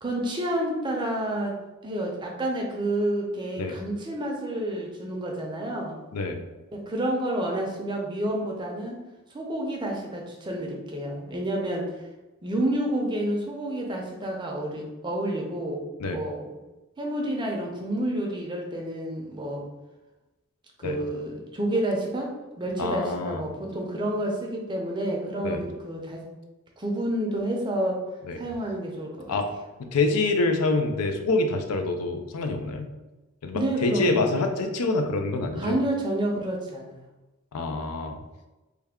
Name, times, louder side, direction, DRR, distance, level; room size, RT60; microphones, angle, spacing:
voice 1, 0.0-1.5 1.8-6.0 6.7-9.0 9.3-11.9 12.4-16.5 17.0-19.6 20.8-22.3 22.6-26.2 26.8-28.0 28.3-29.4 33.5-34.2 35.6-37.0, right 1 dB, 20° right, 0 dB, 0.5 m, -29 dB
voice 2, 22.8-23.4 25.4-25.6 28.3-28.4 29.3-29.5 29.8-32.9 33.4-35.8 37.5-38.2, left 3 dB, 85° left, 5 dB, 0.4 m, -26 dB
3.3 x 2.2 x 3.5 m, 1.1 s
head